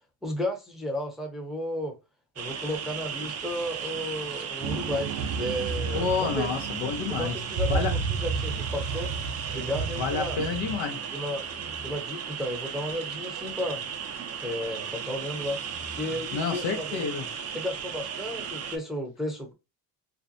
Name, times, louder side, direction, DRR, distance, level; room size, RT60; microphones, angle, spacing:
voice 1, 0.2-2.0 2.4-6.5 7.1-9.1 9.5-10.4 11.1-11.4 11.8-13.8 14.4-15.6 15.9-17.1 17.5-19.5, equal, ahead, 0.7 m, -33 dB
sound 1, 2.4-18.8, right 7 dB, 35° right, 0.4 m, -36 dB
sound 2, 4.6-10.8, right 4 dB, 85° right, 0.6 m, -32 dB
voice 2, 5.9-7.4 7.7-8.1 10.0-11.0 16.3-17.3, left 5 dB, 70° left, 0.8 m, -29 dB
2.5 x 2.1 x 2.6 m
supercardioid pair, 80°, 48 cm